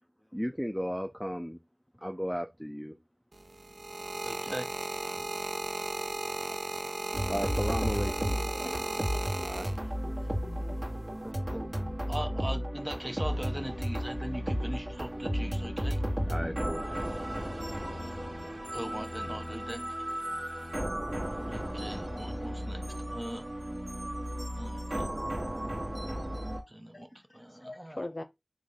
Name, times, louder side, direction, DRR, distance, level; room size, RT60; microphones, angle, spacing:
voice 1, 0.3-1.6 2.0-3.0 7.3-8.5 9.4-9.8 16.2-16.9, equal, ahead, 0.4 m, -35 dB
sound 1, 3.3-10.2 11.0-11.3, right 2 dB, 75° right, 0.4 m, -36 dB
voice 2, 4.2-4.7 11.2-11.7 12.0-16.0 18.7-19.8 21.5-22.8 23.1-23.5 24.6-25.1 26.7-28.0, right 1 dB, 25° right, 0.8 m, -40 dB
voice 3, 6.5-6.8 8.6-9.8 10.0-10.8 26.9-27.2 27.6-28.2, left 2 dB, 55° left, 0.6 m, -44 dB
sound 2, 7.1-26.6, equal, 50° right, 1.8 m, -34 dB
3.8 x 3.0 x 3.8 m
wide cardioid pair, 45°, 0 cm